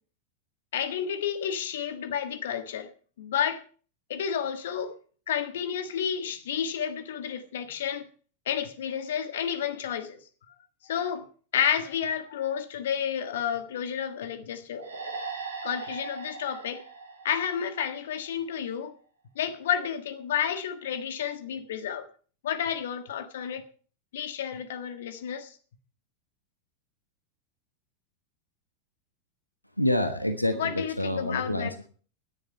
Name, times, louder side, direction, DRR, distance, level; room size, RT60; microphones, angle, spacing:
voice 1, 0.7-2.9 3.2-3.6 4.1-4.9 5.3-8.1 8.5-10.2 10.8-11.3 11.5-14.9 15.6-16.8 17.2-18.9 19.3-22.1 22.4-23.7 24.1-25.6 30.5-31.7, left 8 dB, 60° left, 1.5 m, -31 dB
sound 1, 14.8-18.3, right 4 dB, 70° right, 2.7 m, -39 dB
voice 2, 29.8-31.9, left 1 dB, 85° left, 1.2 m, -28 dB
18.0 x 10.0 x 4.5 m
figure-of-eight pair, 90°, 0 cm